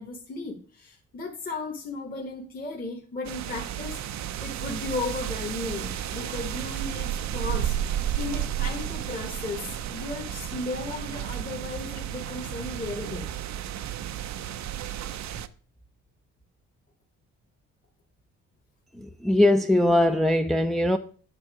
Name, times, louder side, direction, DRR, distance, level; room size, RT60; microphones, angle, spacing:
voice 1, 0.0-13.3 15.3-15.4, left 3 dB, 30° left, 1.5 m, -35 dB
sound 1, 3.2-15.5, right 11 dB, 65° right, 0.7 m, -32 dB
voice 2, 19.0-21.0, left 1 dB, ahead, 0.6 m, -21 dB
9.0 x 5.8 x 4.8 m
cardioid pair, 90°, 30 cm